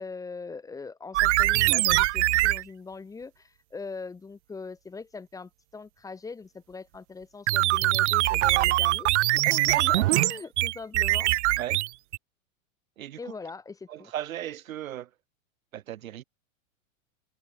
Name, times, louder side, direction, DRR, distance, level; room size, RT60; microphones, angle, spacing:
voice 1, 0.0-11.3 13.2-14.1, left 4 dB, 10° left, 2.9 m, -41 dB
sound 1, 1.1-2.6 7.5-12.2, right 18 dB, 60° right, 0.5 m, -23 dB
voice 2, 13.0-13.3 13.9-15.1 15.7-16.2, right 12 dB, 80° right, 4.5 m, -36 dB
supercardioid pair, 165°, 40 cm